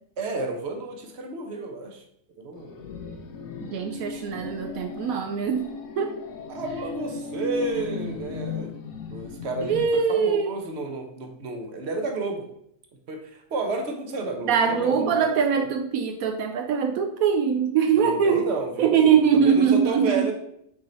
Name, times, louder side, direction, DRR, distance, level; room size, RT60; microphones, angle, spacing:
voice 1, 0.2-2.0 2.4-2.8 4.0-4.1 6.5-8.7 9.1-12.5 13.1-15.6 18.0-20.3, right 3 dB, 50° right, 3 dB, 1.2 m, -31 dB
sound 1, 2.5-9.8, left 4 dB, 75° left, 1.2 m, -36 dB
voice 2, 3.6-5.7 6.0-6.2 9.6-10.6 14.4-18.5 18.8-20.3, right 7 dB, 80° right, 5 dB, 1.1 m, -22 dB
6.6 x 4.0 x 4.3 m, 0.73 s
omnidirectional pair, 1.5 m